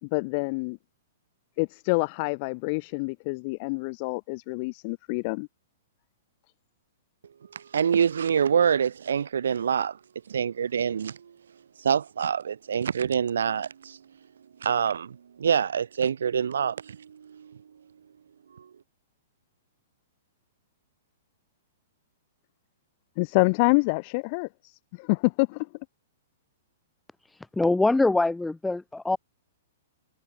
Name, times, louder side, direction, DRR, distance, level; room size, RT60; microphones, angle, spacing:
voice 1, 0.0-0.8 1.6-5.5 23.2-25.7, left 30 dB, 40° left, 3.6 m, -27 dB
voice 2, 7.5-10.0 10.3-11.2 11.8-14.0 14.6-17.0 17.3-17.5 18.6-18.7, right 7 dB, 90° right, 1.6 m, -26 dB
voice 3, 27.3-29.2, left 2 dB, 5° left, 2.5 m, -24 dB
hypercardioid pair, 150°, 0 cm